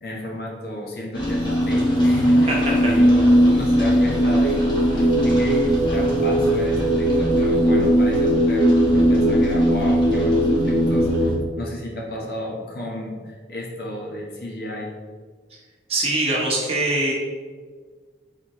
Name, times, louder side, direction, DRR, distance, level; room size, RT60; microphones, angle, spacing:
voice 1, 0.0-4.6 4.9-14.9, left 1 dB, 60° left, -2 dB, 0.9 m, -33 dB
sound 1, 1.1-11.3, equal, 25° left, 1.1 m, -18 dB
voice 2, 15.9-17.1, right 2 dB, 35° right, -4 dB, 0.9 m, -22 dB
4.3 x 4.2 x 2.9 m, 1.5 s
head